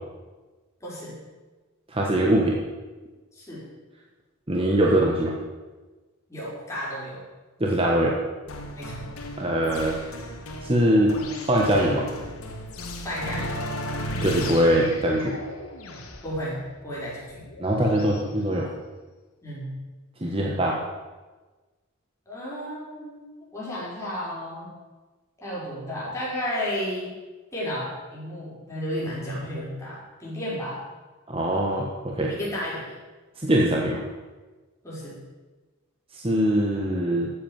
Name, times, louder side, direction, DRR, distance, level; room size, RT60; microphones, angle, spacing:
voice 1, 0.8-1.2 3.3-3.6 6.3-7.2 8.7-9.1 13.0-13.5 16.2-17.5 19.4-19.7 22.3-24.7 25.4-27.1 27.5-30.8 32.2-32.9 34.8-35.2, equal, 15° left, -7 dB, 5.6 m, -33 dB
voice 2, 1.9-2.6 4.5-5.3 7.6-8.1 9.4-10.0 10.6-11.1 11.5-12.1 14.2-15.3 17.6-18.7 20.2-20.8 31.3-32.3 33.4-34.0 36.1-37.3, right 1 dB, 25° right, -1 dB, 1.3 m, -22 dB
sound 1, 8.5-18.2, left 1 dB, 75° left, 2.0 m, -35 dB
13.0 x 8.5 x 7.2 m, 1.3 s
head